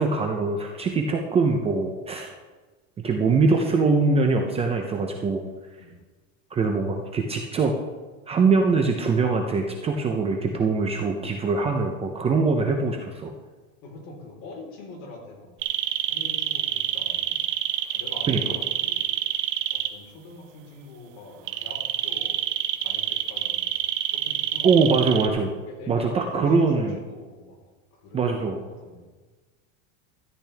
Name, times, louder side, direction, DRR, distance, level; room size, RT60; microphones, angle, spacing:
voice 1, 0.0-2.3 3.0-5.4 6.5-7.7 8.3-13.3 18.3-18.4 24.6-25.5 25.9-26.9 28.1-28.6, right 4 dB, 15° right, 2 dB, 0.6 m, -22 dB
voice 2, 13.8-15.5 16.1-17.4 17.9-19.1 19.7-22.4 22.8-23.7 24.1-24.9 25.7-27.6 27.9-29.0, left 2 dB, 50° left, -1 dB, 4.0 m, -43 dB
sound 1, 15.6-19.9 21.5-25.3, right 12 dB, 50° right, 1.0 m, -26 dB
13.5 x 10.5 x 3.4 m, 1.3 s
supercardioid pair, 150°, 38 cm